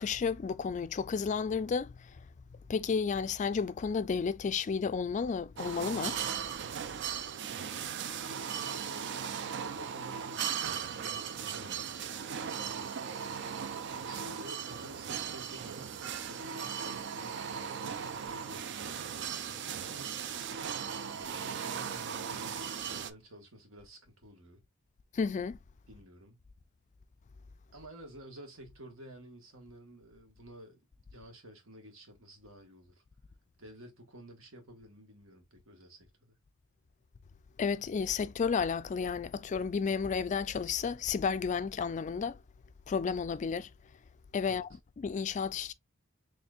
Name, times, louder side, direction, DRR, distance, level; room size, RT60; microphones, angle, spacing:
voice 1, 0.0-2.1 2.7-6.2 25.1-25.6 37.6-42.4 42.9-43.7 44.3-44.7 45.0-45.7, left 5 dB, 35° left, 0.3 m, -32 dB
sound 1, 5.6-23.1, right 7 dB, 60° right, 0.4 m, -38 dB
voice 2, 7.7-10.6 10.9-13.1 13.9-20.3 21.1-24.6 25.9-26.4 27.7-30.8 31.1-33.0 33.6-36.4 44.4-44.6, right 1 dB, 90° right, 1.5 m, -52 dB
4.3 x 3.2 x 2.4 m
head